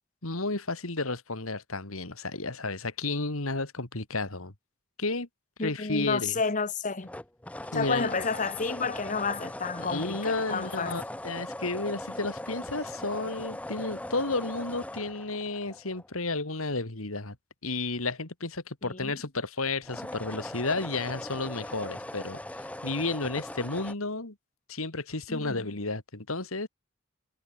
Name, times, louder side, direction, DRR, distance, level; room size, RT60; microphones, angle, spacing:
voice 1, 0.2-4.5 5.0-5.3 5.6-6.4 7.7-8.1 9.8-17.4 17.6-24.3 24.7-26.7, left 3 dB, 75° left, 2.6 m, -32 dB
voice 2, 5.6-7.1 7.7-11.0 18.8-19.2 25.3-25.7, left 4 dB, 35° left, 1.2 m, -31 dB
sound 1, 7.0-16.3 19.8-23.9, left 1 dB, 5° left, 0.8 m, -40 dB
head